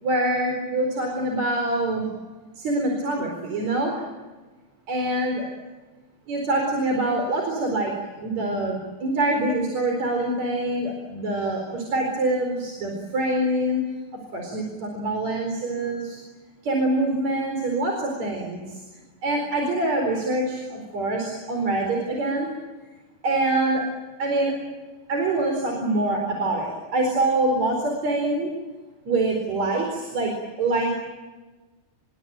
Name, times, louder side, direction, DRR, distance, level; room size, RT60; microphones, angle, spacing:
voice 1, 0.0-2.1 2.6-4.0 4.9-5.4 6.3-13.8 14.3-16.2 16.6-18.8 19.2-22.5 23.2-23.8 24.2-24.5 25.1-28.5 29.1-30.3 30.6-30.9, right 2 dB, 50° right, 2 dB, 5.5 m, -25 dB
27.5 x 23.5 x 9.0 m, 1.3 s
omnidirectional pair, 4.0 m